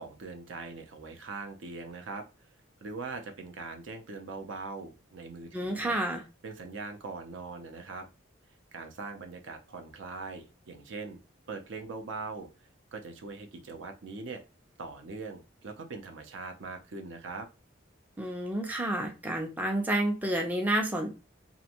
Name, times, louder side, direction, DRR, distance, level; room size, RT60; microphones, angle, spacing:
voice 1, 0.0-2.2 2.8-6.0 6.4-8.1 8.7-11.2 11.5-12.5 12.9-14.4 14.8-17.5, right 3 dB, 65° right, 5 dB, 0.5 m, -41 dB
voice 2, 5.5-6.2 18.2-21.1, right 1 dB, 10° right, 1 dB, 0.4 m, -30 dB
2.5 x 2.1 x 2.8 m, 0.29 s
head